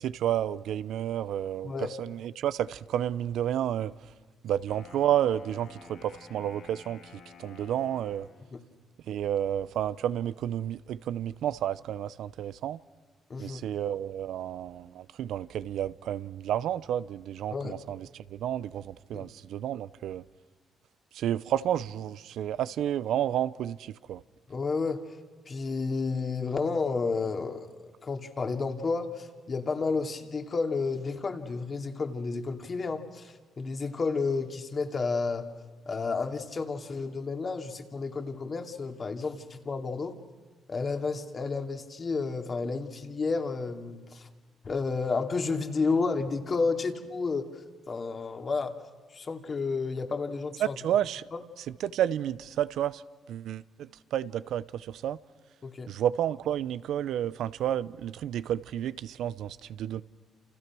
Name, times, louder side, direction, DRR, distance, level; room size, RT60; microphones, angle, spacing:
voice 1, 0.0-1.7 2.0-3.9 4.4-7.1 7.4-8.3 9.1-12.8 13.4-20.2 21.1-24.2 50.6-51.3 51.6-53.0 53.3-55.2 55.9-60.0, right 11 dB, 80° right, 0.7 m, -31 dB
Wind instrument woodwind instrument, 4.6-8.5, left 5 dB, 65° left, 6.6 m, -51 dB
voice 2, 13.3-13.6 17.5-17.8 19.1-19.3 24.5-25.0 25.5-35.5 35.9-40.2 40.7-44.3 44.6-47.5 47.9-48.8 49.1-50.8 51.3-51.4 55.6-55.9, left 4 dB, 40° left, 2.6 m, -31 dB
29.0 x 28.5 x 6.2 m
cardioid pair, 90°, 0 cm